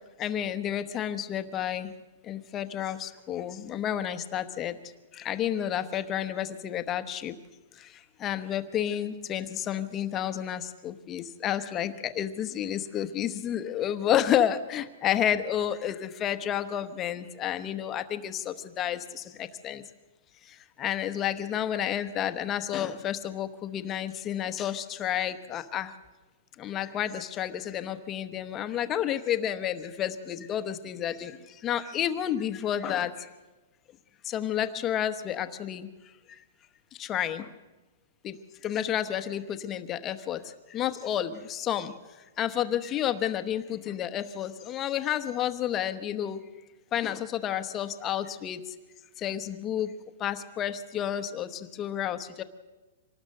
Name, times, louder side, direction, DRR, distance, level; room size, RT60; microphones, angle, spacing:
voice 1, 0.2-1.9 2.3-4.8 5.1-7.4 8.2-19.8 20.8-25.9 26.6-31.4 31.6-33.1 34.3-35.9 37.0-37.5 38.2-38.4 38.6-40.4 40.7-41.9 42.4-46.4 46.9-48.6 49.2-49.9 50.2-52.4, left 10 dB, 20° left, 9 dB, 1.0 m, -30 dB
25.0 x 19.0 x 6.6 m, 1.2 s
hypercardioid pair, 170°, 0 cm